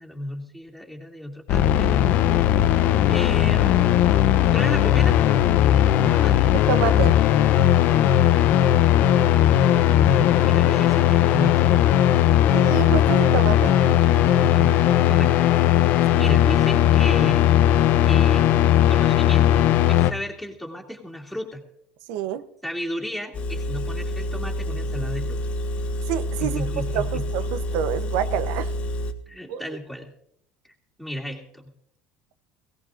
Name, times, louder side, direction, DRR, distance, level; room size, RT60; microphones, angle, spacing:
voice 1, 0.0-1.9 3.0-3.9 4.5-5.2 6.0-6.5 9.5-11.6 15.9-17.5 18.1-18.5 18.9-21.6 22.6-25.4 26.4-27.3 29.3-30.1 30.6-30.7 31.0-31.6, equal, ahead, -1 dB, 2.7 m, -33 dB
sound 1, 1.5-20.1, left 11 dB, 55° left, 0.7 m, -18 dB
voice 2, 6.7-7.2 12.5-13.7 16.2-16.4 22.1-22.4 26.1-26.7 26.9-28.7 29.5-29.8, right 10 dB, 75° right, 12 dB, 0.9 m, -27 dB
Engine, 23.3-29.1, equal, 35° left, 1.5 m, -28 dB
22.0 x 17.0 x 2.6 m, 0.71 s
cardioid pair, 140°, 4 cm